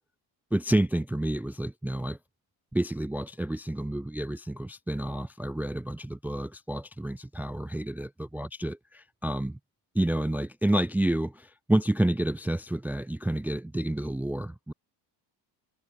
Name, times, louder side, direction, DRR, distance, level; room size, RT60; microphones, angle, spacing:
voice 1, 0.5-2.2 2.7-9.6 9.9-14.7, right 1 dB, 5° right, 0.5 m, -29 dB
cardioid pair, 120°, 42 cm